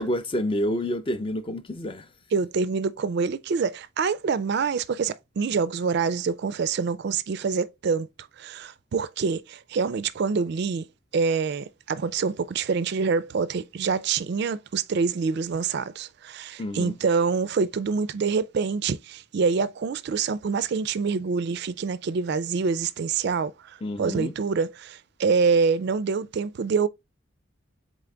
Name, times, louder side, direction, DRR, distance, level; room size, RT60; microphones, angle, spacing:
voice 1, 0.0-2.1 16.6-16.9 23.8-24.3, equal, 25° left, 0.4 m, -28 dB
voice 2, 2.3-8.1 8.4-10.9 11.1-26.9, right 5 dB, 50° right, 0.3 m, -26 dB
4.0 x 3.7 x 3.3 m
head